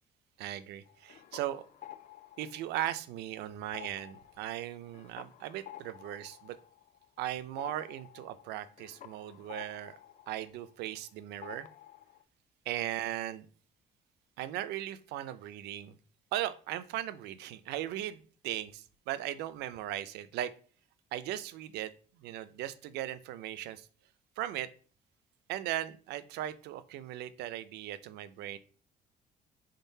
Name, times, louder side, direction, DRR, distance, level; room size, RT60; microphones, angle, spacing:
voice 1, 0.4-1.6 2.4-6.6 7.2-9.9 10.3-11.7 12.7-13.5 14.4-16.0 16.3-20.5 21.1-21.9 22.2-23.9 24.4-24.7 25.5-28.6, right 13 dB, 80° right, 14 dB, 0.4 m, -38 dB
sound 1, 0.9-3.3 3.6-11.1 11.4-12.2, left 12 dB, 50° left, 0.4 m, -51 dB
3.7 x 3.7 x 2.7 m, 0.40 s
cardioid pair, 110°, 17 cm